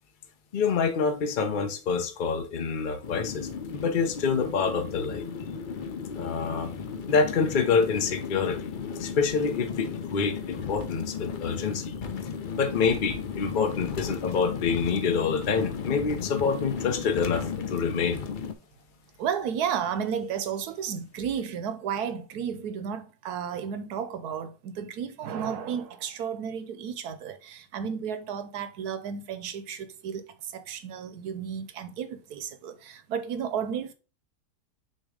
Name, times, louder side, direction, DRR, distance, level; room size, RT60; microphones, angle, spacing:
voice 1, 0.5-3.5 3.7-5.2 6.2-6.7 7.1-8.7 9.0-11.9 12.6-18.2, left 5 dB, 40° left, 0.8 m, -27 dB
sound 1, 3.0-18.5, left 6 dB, 65° left, 0.4 m, -35 dB
voice 2, 19.2-33.9, right 7 dB, 75° right, 1.2 m, -33 dB
6.5 x 3.0 x 4.9 m
omnidirectional pair, 1.7 m